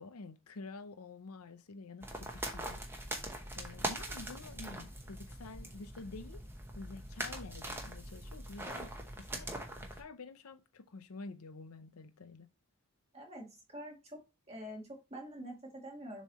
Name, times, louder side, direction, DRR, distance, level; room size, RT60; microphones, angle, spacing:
voice 1, 0.0-2.8 3.1-3.2 3.6-6.4 6.7-8.9 9.2-12.5, left 3 dB, 85° left, 0.7 m, -49 dB
sound 1, 2.0-10.0, right 1 dB, 10° right, 0.9 m, -42 dB
voice 2, 13.1-14.2 14.5-16.2, equal, 30° right, 2.1 m, -46 dB
7.2 x 3.2 x 4.1 m
head